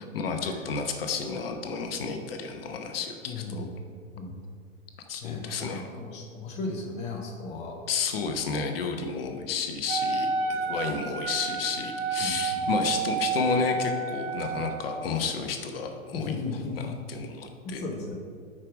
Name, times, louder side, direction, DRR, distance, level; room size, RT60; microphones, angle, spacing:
voice 1, 0.1-3.7 5.1-5.8 7.9-16.3 16.8-17.8, left 5 dB, 45° left, 5 dB, 0.8 m, -31 dB
voice 2, 3.2-3.7 4.1-4.3 5.2-7.8 10.6-11.0 12.2-12.6 16.1-17.0 17.6-18.1, left 3 dB, 15° left, 1 dB, 0.7 m, -36 dB
Wind instrument woodwind instrument, 9.9-14.9, right 4 dB, 40° right, 0.7 m, -30 dB
8.6 x 4.8 x 5.1 m, 2.1 s
figure-of-eight pair, 115°, 41 cm